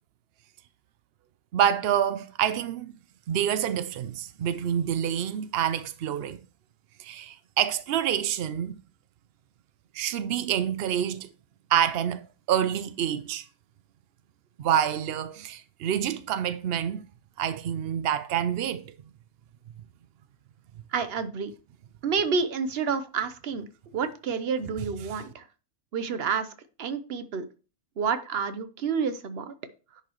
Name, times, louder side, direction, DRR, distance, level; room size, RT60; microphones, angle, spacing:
voice 1, 1.5-2.9 3.3-6.4 7.0-8.8 9.9-11.3 11.7-12.2 12.5-13.4 14.6-17.0 17.4-18.8 25.1-25.2, right 9 dB, 85° right, 0.5 m, -27 dB
voice 2, 20.9-21.5 22.0-23.6 23.9-25.4 25.9-26.5 26.8-27.4 28.0-29.5, right 5 dB, 50° right, 0.8 m, -29 dB
10.5 x 5.5 x 3.0 m
omnidirectional pair, 1.7 m